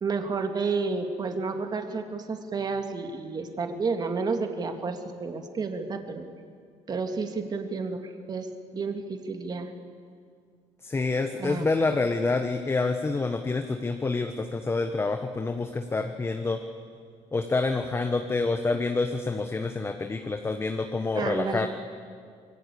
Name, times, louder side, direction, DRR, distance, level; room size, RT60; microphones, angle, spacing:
voice 1, 0.0-6.3 6.9-8.0 8.3-8.5 8.7-9.7 11.4-11.7 21.2-21.7, right 4 dB, 35° right, 6 dB, 2.3 m, -30 dB
voice 2, 10.8-16.6 17.3-21.7, left 3 dB, 20° left, 6 dB, 1.2 m, -27 dB
25.0 x 22.0 x 8.5 m, 2.1 s
cardioid pair, 125°, 12 cm